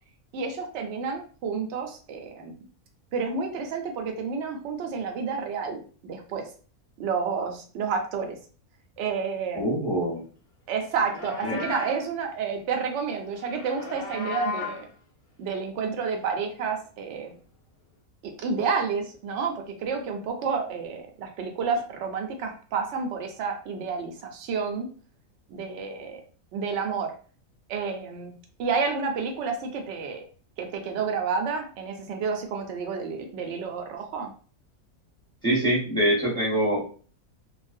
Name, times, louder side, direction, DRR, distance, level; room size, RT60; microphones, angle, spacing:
voice 1, 0.3-2.5 3.1-6.5 7.0-8.4 9.0-9.7 10.7-14.9 15.4-17.3 18.2-24.9 25.5-26.2 26.5-27.1 27.7-28.3 28.6-30.2 30.6-34.3, right 5 dB, 65° right, 3 dB, 0.7 m, -30 dB
voice 2, 9.5-10.2 11.4-11.7 35.4-36.8, right 1 dB, 5° left, -7 dB, 0.8 m, -24 dB
Livestock farm animals working animals, 10.9-12.1 13.4-14.9, left 4 dB, 45° left, 0.7 m, -35 dB
2.4 x 2.0 x 2.5 m, 0.40 s
omnidirectional pair, 1.5 m